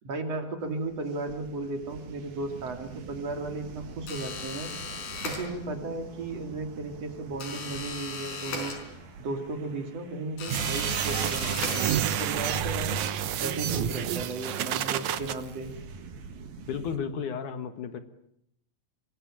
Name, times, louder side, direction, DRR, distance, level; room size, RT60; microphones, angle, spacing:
voice 1, 0.0-4.7 5.2-8.7 9.2-13.0 13.4-15.7, right 2 dB, 45° right, 6 dB, 3.8 m, -35 dB
sound 1, 0.6-17.0, right 5 dB, 80° right, 4.3 m, -47 dB
sound 2, 4.1-5.9 7.4-9.3 10.4-12.4, left 4 dB, 90° left, 6.3 m, -37 dB
sound 3, 10.5-15.3, right 9 dB, 65° right, 2.2 m, -29 dB
voice 2, 16.6-18.0, left 7 dB, 65° left, 9 dB, 2.8 m, -33 dB
25.0 x 23.5 x 8.9 m, 0.75 s
omnidirectional pair, 4.1 m